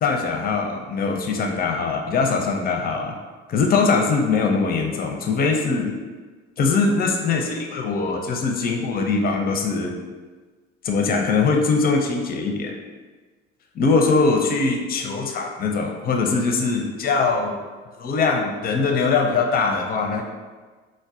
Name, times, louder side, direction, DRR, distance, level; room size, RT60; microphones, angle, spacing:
voice 1, 0.0-3.2 3.5-5.9 6.6-10.0 10.8-12.7 13.8-17.6 18.0-20.2, left 4 dB, 25° left, 3 dB, 0.4 m, -22 dB
4.4 x 2.1 x 2.3 m, 1.3 s
figure-of-eight pair, 60°, 37 cm